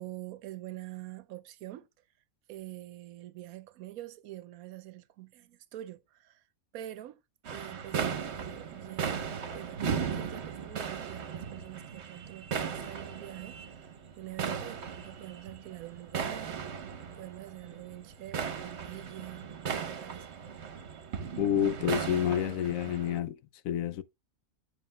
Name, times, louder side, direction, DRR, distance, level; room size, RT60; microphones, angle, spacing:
voice 1, 0.0-1.9 2.5-6.4 6.7-7.2 7.5-9.2 9.5-13.9 14.2-16.9 17.1-20.3, right 15 dB, 90° right, 1.1 m, -45 dB
sound 1, 7.4-23.2, right 7 dB, 55° right, 1.1 m, -37 dB
voice 2, 21.4-23.4 23.6-24.0, left 10 dB, 75° left, 1.0 m, -29 dB
7.4 x 7.1 x 2.2 m
omnidirectional pair, 1.5 m